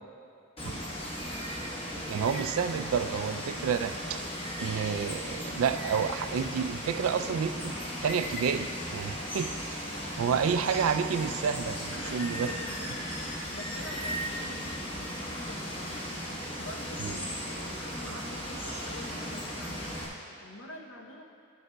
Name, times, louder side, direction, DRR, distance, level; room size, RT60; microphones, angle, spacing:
voice 1, 0.6-0.9 11.9-21.2, left 1 dB, 60° left, 2 dB, 0.7 m, -46 dB
Water, 0.6-20.1, equal, 25° left, 1.1 m, -36 dB
voice 2, 1.9-4.2 4.6-7.8 8.0-12.5 17.0-17.1 18.1-18.2, right 6 dB, 75° right, 10 dB, 0.3 m, -30 dB
12.0 x 6.5 x 2.2 m, 2.5 s
head